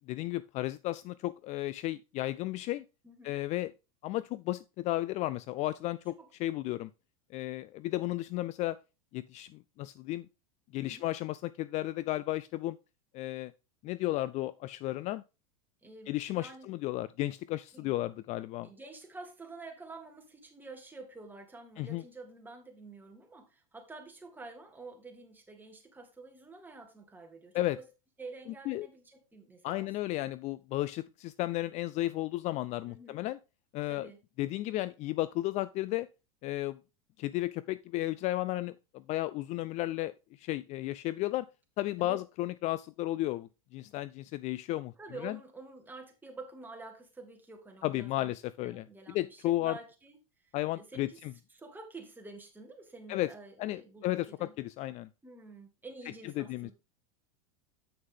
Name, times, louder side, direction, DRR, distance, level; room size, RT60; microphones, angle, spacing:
voice 1, 0.1-2.8 3.2-3.7 4.0-6.9 7.3-8.8 9.1-10.3 10.7-12.8 13.1-13.5 13.8-15.2 16.1-18.7 21.8-22.0 27.5-27.8 28.7-28.9 29.6-33.4 33.7-34.1 34.4-36.1 36.4-36.8 37.2-41.5 41.8-44.9 45.2-45.4 47.8-49.8 50.5-51.3 53.1-53.3 53.6-55.1 56.2-56.7, left 16 dB, 40° left, 0.4 m, -34 dB
voice 2, 3.0-3.4 6.2-6.3 10.9-11.1 15.8-16.7 17.7-18.0 18.6-27.9 28.2-29.9 30.2-30.3 32.9-33.2 33.9-34.2 42.0-42.2 45.0-48.4 48.6-50.2 50.8-51.2 51.5-54.5 55.2-56.7, right 3 dB, 10° right, 2.1 m, -49 dB
8.0 x 6.4 x 3.6 m
hypercardioid pair, 100°, 18 cm